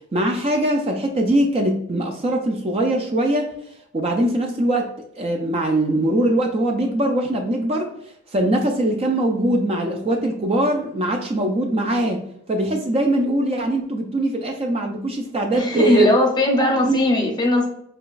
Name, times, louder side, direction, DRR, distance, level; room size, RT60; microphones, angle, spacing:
voice 1, 0.1-3.5 3.9-4.9 5.2-7.9 8.3-12.2 12.5-16.1 16.6-17.0, right 1 dB, 25° right, 3 dB, 0.3 m, -21 dB
voice 2, 15.5-17.7, left 1 dB, 20° left, 1 dB, 0.7 m, -19 dB
5.0 x 2.3 x 2.4 m, 0.72 s
head